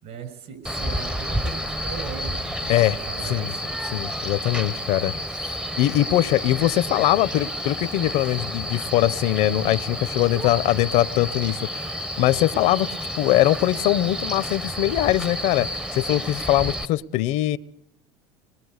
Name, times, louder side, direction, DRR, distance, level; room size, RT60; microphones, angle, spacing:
voice 1, 0.0-3.8, right 6 dB, 60° right, 9 dB, 6.7 m, -38 dB
Male speech man speaking, 0.7-16.9, equal, 5° right, 0.9 m, -30 dB
voice 2, 3.9-5.1 5.8-17.6, left 15 dB, 60° left, 17 dB, 0.9 m, -22 dB
25.5 x 21.5 x 8.1 m, 0.79 s
supercardioid pair, 100°, 13 cm